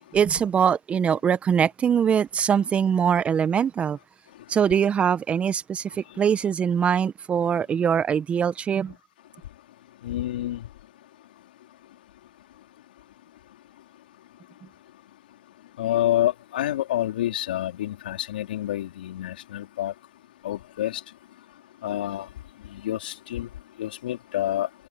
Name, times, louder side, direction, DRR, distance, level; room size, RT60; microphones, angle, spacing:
voice 1, 0.1-4.0 4.5-8.9, right 7 dB, 25° right, 0.9 m, -22 dB
voice 2, 10.0-10.6 15.8-19.9 20.4-21.0 21.8-22.3 22.7-23.5 23.8-24.7, left 13 dB, 75° left, 3.8 m, -28 dB
hypercardioid pair, 115°, 5 cm